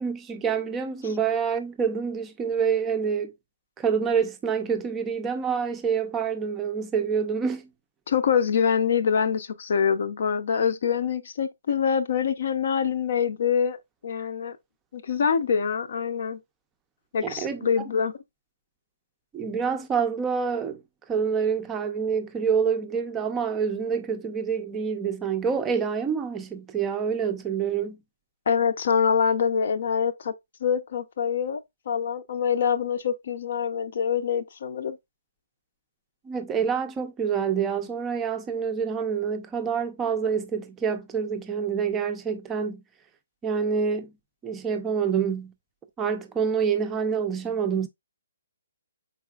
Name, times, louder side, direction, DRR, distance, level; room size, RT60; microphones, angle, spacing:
voice 1, 0.0-3.3 3.8-7.7 17.2-17.7 19.3-20.8 21.1-28.0 36.2-42.8 43.4-44.1 44.4-45.5 46.0-47.9, right 6 dB, 15° right, 0.4 m, -27 dB
voice 2, 8.1-13.8 14.0-14.6 14.9-16.4 17.1-18.1 28.5-30.3 30.6-31.6 31.9-35.0, left 7 dB, 55° left, 0.6 m, -25 dB
4.7 x 4.1 x 2.3 m
hypercardioid pair, 155°, 0 cm